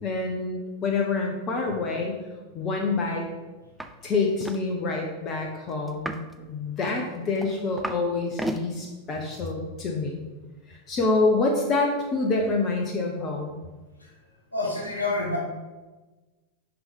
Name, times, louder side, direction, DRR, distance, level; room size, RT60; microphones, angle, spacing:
voice 1, 0.0-2.2 2.5-3.3 4.0-6.2 6.5-10.2 10.7-13.6, left 3 dB, 30° left, 2 dB, 1.0 m, -27 dB
sound 1, 3.8-3.9 4.2-4.6 5.9-6.3 6.9-8.0 8.3-8.6 9.3-9.5, right 1 dB, ahead, 0.5 m, -34 dB
voice 2, 14.5-15.4, left 2 dB, 80° left, -3 dB, 2.2 m, -28 dB
5.9 x 5.6 x 5.4 m, 1.2 s
figure-of-eight pair, 90°, 0 cm